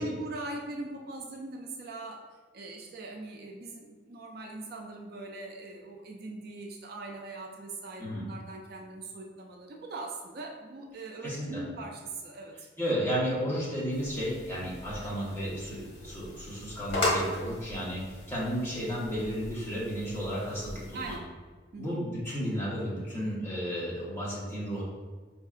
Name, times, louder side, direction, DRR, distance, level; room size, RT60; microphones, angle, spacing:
voice 1, 0.0-2.3 2.5-12.7 20.9-21.3 21.7-22.0, right 2 dB, 55° right, 2 dB, 0.3 m, -41 dB
voice 2, 11.2-11.6 12.8-21.1 21.8-24.8, equal, 15° left, -7 dB, 0.9 m, -33 dB
sound 1, 13.9-21.2, left 1 dB, 85° left, 1.1 m, -37 dB
4.5 x 2.7 x 2.4 m, 1.4 s
head